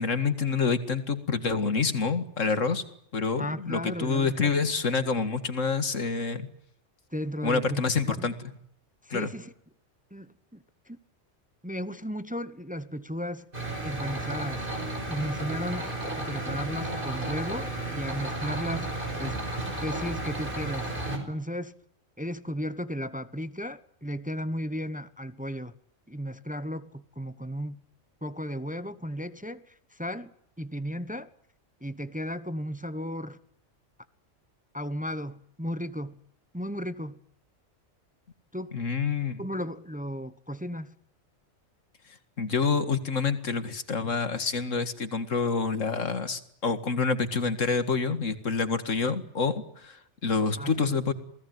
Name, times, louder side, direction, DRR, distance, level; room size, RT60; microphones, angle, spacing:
voice 1, 0.0-2.8 3.1-6.4 7.4-8.3 9.1-9.3 38.7-39.4 42.4-51.1, left 4 dB, 90° left, 2.4 m, -27 dB
voice 2, 3.3-4.5 7.1-7.8 8.1-8.3 9.0-9.5 10.1-11.0 11.6-13.5 13.8-14.7 15.1-15.9 16.2-18.9 19.2-19.4 19.8-21.7 22.2-25.7 26.1-27.8 28.2-31.3 31.8-33.4 34.7-36.2 36.5-37.2 38.5-38.8 39.4-40.9 50.6-51.0, equal, 5° right, 1.0 m, -35 dB
sound 1, 13.5-21.2, right 2 dB, 45° right, 5.5 m, -33 dB
28.0 x 19.0 x 9.5 m
omnidirectional pair, 1.3 m